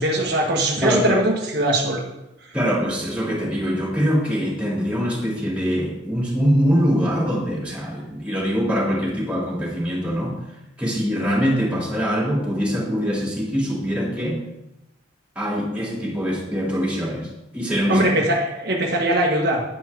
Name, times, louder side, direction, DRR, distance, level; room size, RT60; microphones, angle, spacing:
voice 1, 0.0-2.0 17.9-19.6, right 1 dB, 55° right, -1 dB, 1.4 m, -21 dB
voice 2, 0.8-1.2 2.5-10.4 10.8-14.4 15.3-18.1, equal, 5° right, -4 dB, 2.9 m, -23 dB
10.5 x 9.4 x 3.6 m, 0.93 s
head